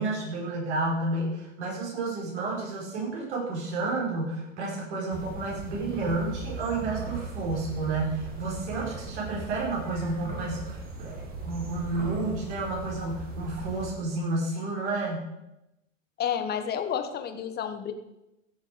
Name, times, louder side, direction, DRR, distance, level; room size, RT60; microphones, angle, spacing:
voice 1, 0.0-15.3, right 3 dB, 55° right, -3 dB, 4.9 m, -31 dB
sound 1, 5.1-13.9, right 3 dB, 25° right, 2.4 m, -38 dB
voice 2, 16.2-17.9, left 8 dB, 25° left, 8 dB, 1.3 m, -30 dB
15.5 x 6.9 x 5.1 m, 0.91 s
hypercardioid pair, 105°, 39 cm